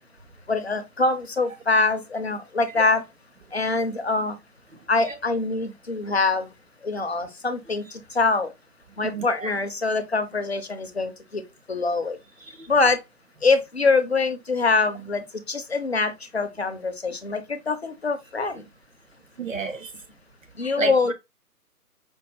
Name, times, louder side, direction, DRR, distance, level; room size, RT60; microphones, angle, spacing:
voice 1, 0.5-3.0 3.5-4.3 4.9-6.5 6.8-7.8 8.2-8.5 9.0-11.4 11.7-12.2 12.7-13.0 13.4-15.2 15.5-18.5 20.6-21.1, left 3 dB, 45° left, 0.5 m, -24 dB
voice 2, 9.0-9.5 12.6-12.7 19.4-19.9 20.8-21.1, right 4 dB, 55° right, 0.6 m, -30 dB
5.1 x 2.1 x 3.0 m
figure-of-eight pair, 150°, 46 cm